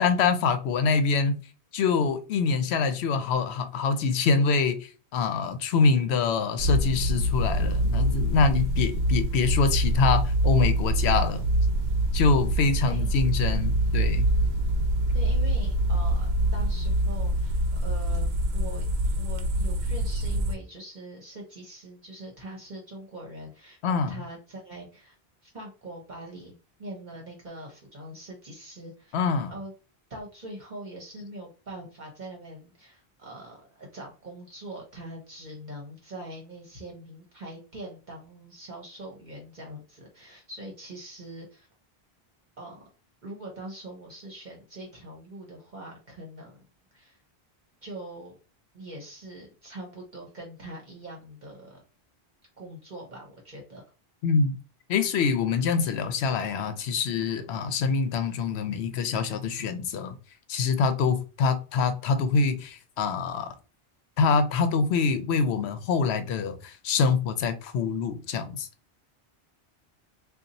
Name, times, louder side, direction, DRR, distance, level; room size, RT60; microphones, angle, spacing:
voice 1, 0.0-1.4 1.7-11.5 12.1-14.3 23.8-24.2 29.1-29.5 54.2-54.5 54.9-60.1 60.5-63.5 64.2-68.7, left 5 dB, 85° left, 0.9 m, -25 dB
sound 1, 6.6-20.5, right 1 dB, 75° right, 0.8 m, -25 dB
voice 2, 15.1-18.8 19.2-25.1 25.4-26.5 26.8-29.2 29.5-29.7 30.1-41.7 42.6-42.8 43.2-46.5 46.9-47.2 47.8-48.3 48.7-51.8 52.6-53.8, right 1 dB, 50° right, 1.0 m, -43 dB
2.6 x 2.4 x 3.9 m
omnidirectional pair, 1.1 m